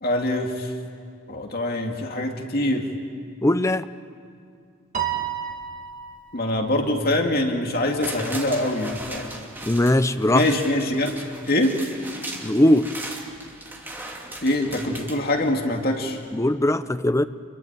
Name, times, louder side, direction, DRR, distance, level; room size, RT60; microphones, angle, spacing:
voice 1, 0.0-0.7 1.3-2.9 6.3-9.3 10.3-11.2 11.5-11.8 14.4-16.2, left 1 dB, 50° left, 2 dB, 2.4 m, -24 dB
voice 2, 3.4-3.9 9.6-10.5 12.4-12.9 16.3-17.2, left 1 dB, 15° left, 11 dB, 0.6 m, -20 dB
Piano, 4.9-6.5, right 9 dB, 40° right, 2.5 m, -30 dB
sound 1, 7.7-15.8 16.2-16.3, right 1 dB, 10° right, 2.7 m, -38 dB
28.0 x 23.0 x 8.9 m, 2.3 s
head